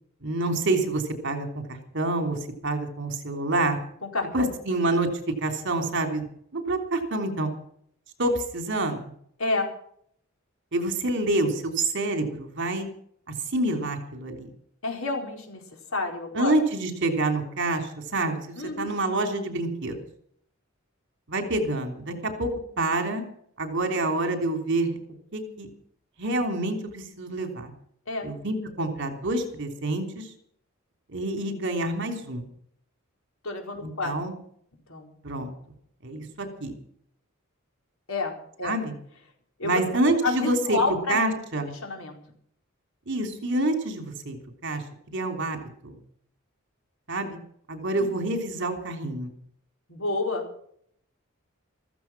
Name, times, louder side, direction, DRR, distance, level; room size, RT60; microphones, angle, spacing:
voice 1, 0.2-3.8 4.3-6.3 6.5-7.5 8.2-9.0 10.7-12.9 13.5-14.5 16.3-18.4 18.8-20.0 21.3-22.5 22.8-23.2 23.6-25.0 25.3-25.7 26.2-27.7 28.2-30.3 31.1-32.4 33.8-34.3 35.2-35.5 36.0-36.7 38.6-38.9 39.6-40.8 41.1-41.7 43.1-44.4 44.6-44.8 45.1-46.0 47.1-47.4 47.7-49.3, right 2 dB, 60° right, 5 dB, 3.3 m, -27 dB
voice 2, 4.0-4.5 9.4-9.7 14.8-15.6 15.9-16.5 18.5-18.9 28.1-28.3 33.4-34.1 34.9-35.1 38.1-38.8 39.6-39.8 40.2-41.4 41.7-42.2 48.0-48.1 49.9-50.5, left 3 dB, 75° left, 2 dB, 4.5 m, -29 dB
15.0 x 15.0 x 6.0 m, 0.66 s
head